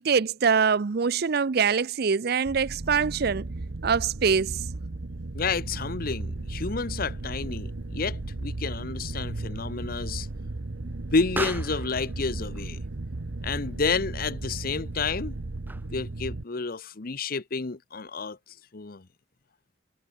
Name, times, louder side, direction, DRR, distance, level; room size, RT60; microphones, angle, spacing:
voice 1, 0.0-3.5 3.8-4.6, right 6 dB, 55° right, 0.5 m, -24 dB
sound 1, 2.4-16.4, right 2 dB, 75° right, 1.0 m, -35 dB
voice 2, 5.3-10.3 10.8-12.8 13.4-15.4 15.9-18.4 18.7-19.1, left 4 dB, 50° left, 0.9 m, -30 dB
Explosion, 7.2-16.2, right 2 dB, 10° right, 1.6 m, -42 dB
head